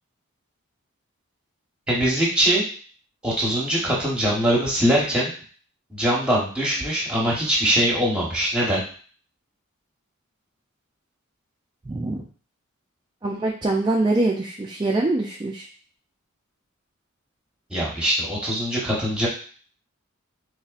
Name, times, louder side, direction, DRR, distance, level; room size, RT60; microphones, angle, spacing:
voice 1, 1.9-2.6 3.2-5.3 5.9-8.8 17.7-19.3, right 1 dB, 5° right, -4 dB, 1.1 m, -22 dB
voice 2, 11.9-12.2 13.2-15.7, right 2 dB, 20° right, -1 dB, 0.3 m, -24 dB
4.1 x 3.2 x 2.4 m, 0.43 s
head